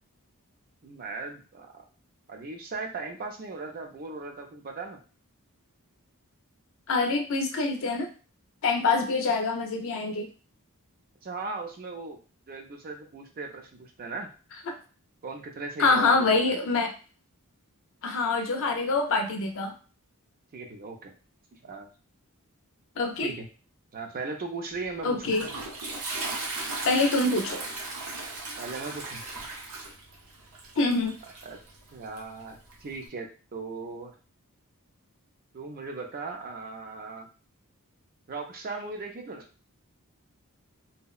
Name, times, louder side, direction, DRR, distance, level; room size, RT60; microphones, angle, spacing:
voice 1, 0.8-1.8 2.3-5.0 11.2-12.2 12.5-14.3 15.2-16.5 20.5-21.1 21.5-21.9 23.2-23.5 23.9-25.2 28.6-29.2 31.4-31.6 31.9-34.1 35.5-37.3 38.3-39.5, right 3 dB, 40° right, 2 dB, 0.5 m, -38 dB
voice 2, 6.9-8.1 8.6-10.3 15.8-16.9 18.0-19.7 23.0-23.3 25.0-25.5 26.8-27.6 30.8-31.1, left 3 dB, 60° left, 4 dB, 0.5 m, -25 dB
Toilet flush, 24.7-33.1, right 3 dB, 80° right, 0.7 m, -37 dB
2.7 x 2.0 x 2.3 m, 0.36 s
head